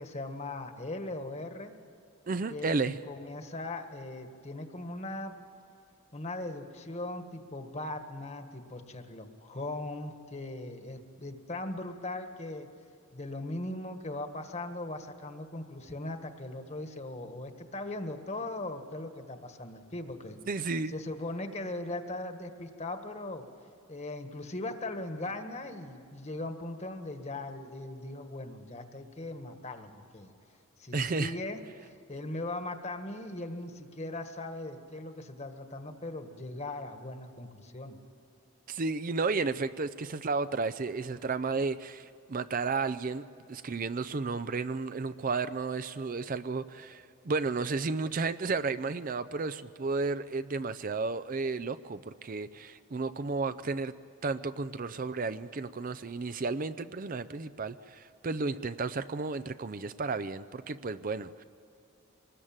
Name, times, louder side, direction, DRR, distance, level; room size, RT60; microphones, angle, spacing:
voice 1, 0.0-1.7 2.5-5.3 6.1-12.7 13.1-20.4 20.9-23.4 23.9-30.3 30.8-38.0, left 2 dB, 30° left, 7 dB, 1.6 m, -39 dB
voice 2, 2.3-3.0 20.5-20.9 30.9-31.4 38.7-53.9 54.2-61.4, right 4 dB, 40° right, 12 dB, 0.5 m, -33 dB
25.0 x 20.0 x 8.8 m, 2.5 s
head